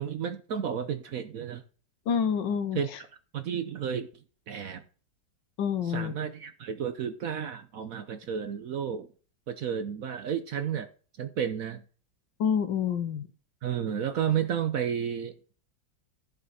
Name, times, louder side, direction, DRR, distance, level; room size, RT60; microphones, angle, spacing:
voice 1, 0.0-1.6 2.7-2.9 3.3-4.1 4.5-4.8 5.9-9.1 9.5-10.9 11.2-11.8 13.6-15.6, right 8 dB, 65° right, 0.9 m, -32 dB
voice 2, 2.1-3.0 5.6-6.1 12.4-13.3, left 7 dB, 75° left, 1.6 m, -28 dB
14.0 x 5.7 x 4.2 m
omnidirectional pair, 2.0 m